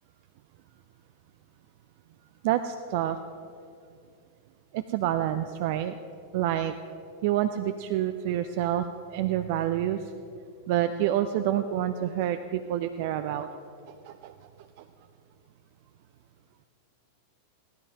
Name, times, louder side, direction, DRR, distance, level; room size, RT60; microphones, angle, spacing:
voice 1, 2.4-3.2 4.7-6.0 6.3-6.7 7.2-10.1 10.7-13.5 13.9-14.3, right 11 dB, 50° right, 9 dB, 0.5 m, -28 dB
16.5 x 12.5 x 4.8 m, 2.5 s
figure-of-eight pair, 90°, 0 cm